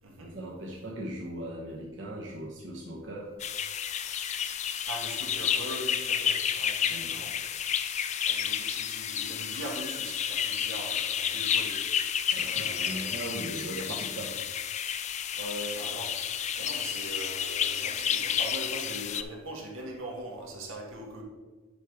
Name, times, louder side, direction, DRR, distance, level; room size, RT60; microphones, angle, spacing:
voice 1, 0.2-3.4 6.9-7.1 12.3-14.3, right 1 dB, 65° right, -3 dB, 1.1 m, -39 dB
sound 1, 3.4-19.2, left 8 dB, 35° left, 0.3 m, -31 dB
voice 2, 4.9-7.3 8.3-12.0 12.4-14.3 15.3-21.2, right 1 dB, 80° right, 0 dB, 1.6 m, -41 dB
10.5 x 3.6 x 4.8 m, 1.3 s
head